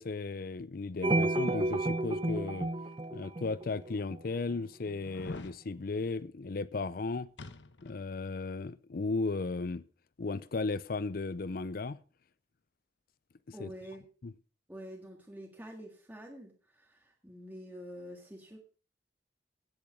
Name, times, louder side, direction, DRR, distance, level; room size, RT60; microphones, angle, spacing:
voice 1, 0.0-2.7 3.1-7.3 7.8-9.8 10.2-12.0 13.6-13.7 14.2-14.3, left 3 dB, 50° left, 0.5 m, -35 dB
sound 1, 1.0-4.2, right 2 dB, 30° right, 0.7 m, -31 dB
sound 2, 3.0-3.1 3.8-3.9 5.0-5.6 7.4-8.0 8.4-8.5, left 2 dB, 80° left, 1.1 m, -45 dB
voice 2, 13.5-14.0 14.7-18.6, equal, 10° right, 1.8 m, -47 dB
16.0 x 7.1 x 5.0 m
head